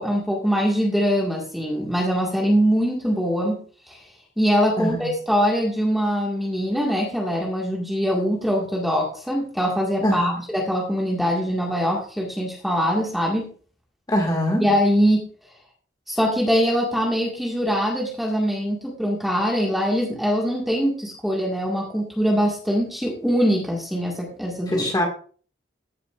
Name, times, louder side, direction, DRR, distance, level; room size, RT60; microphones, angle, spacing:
voice 1, 0.0-3.6 3.9-4.0 4.4-13.5 14.5-15.2 16.1-24.9, equal, ahead, -2 dB, 1.8 m, -23 dB
voice 2, 4.8-5.1 10.0-10.4 14.1-14.6 24.7-25.0, equal, 20° left, 1 dB, 2.0 m, -23 dB
14.5 x 6.9 x 2.5 m, 0.42 s
head